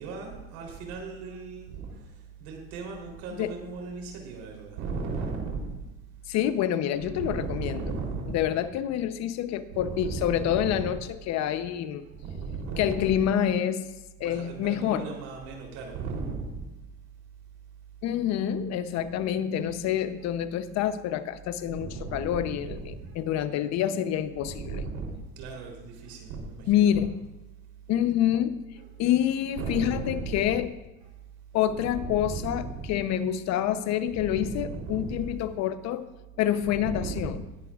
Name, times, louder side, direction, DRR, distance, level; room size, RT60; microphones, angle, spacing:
voice 1, 0.0-2.1 2.4-5.8 7.0-8.8 9.7-11.0 12.1-13.2 14.2-16.6 20.2-20.3 21.7-23.2 24.3-27.0 28.7-28.9 29.6-30.5 31.0-31.1 31.6-33.0 34.1-35.4 36.7-37.4, right 4 dB, 75° right, 0 dB, 3.8 m, -36 dB
voice 2, 6.3-7.8 8.3-12.1 12.8-15.1 18.0-24.8 26.7-27.2 27.9-28.6 29.0-30.7 31.5-36.1 36.4-37.4, left 10 dB, 65° left, 11 dB, 0.9 m, -27 dB
19.5 x 10.5 x 2.5 m, 1.0 s
supercardioid pair, 100°, 30 cm